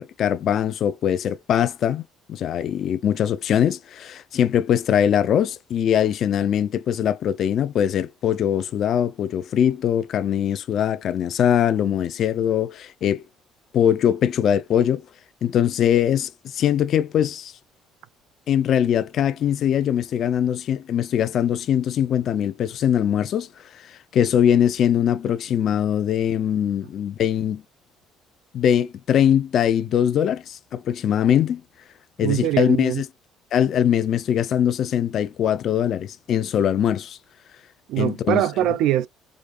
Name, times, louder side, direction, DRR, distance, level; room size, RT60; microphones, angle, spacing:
voice 1, 0.0-2.0 2.3-13.2 13.7-15.1 15.4-17.5 18.5-27.6 28.5-31.6 32.2-33.1 33.5-37.2 38.0-38.4, left 9 dB, 50° left, 0.6 m, -22 dB
voice 2, 32.2-33.0 37.9-39.1, right 12 dB, 75° right, 0.5 m, -22 dB
5.1 x 2.5 x 2.5 m
cardioid pair, 150°, 0 cm